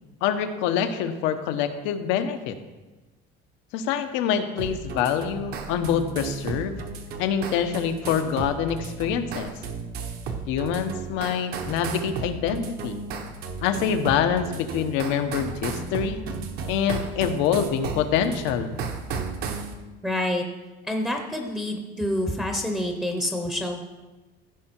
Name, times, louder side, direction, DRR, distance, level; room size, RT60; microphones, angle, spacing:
voice 1, 0.2-2.6 3.7-6.8 7.2-9.5 10.5-13.0 13.6-16.3 16.7-18.8, left 8 dB, 85° left, 8 dB, 0.9 m, -25 dB
sound 1, 4.6-19.7, right 5 dB, 55° right, 1.0 m, -34 dB
voice 2, 20.0-20.4 20.8-23.8, left 1 dB, 5° right, 2 dB, 0.7 m, -27 dB
15.0 x 5.5 x 4.5 m, 1.2 s
cardioid pair, 165°, 19 cm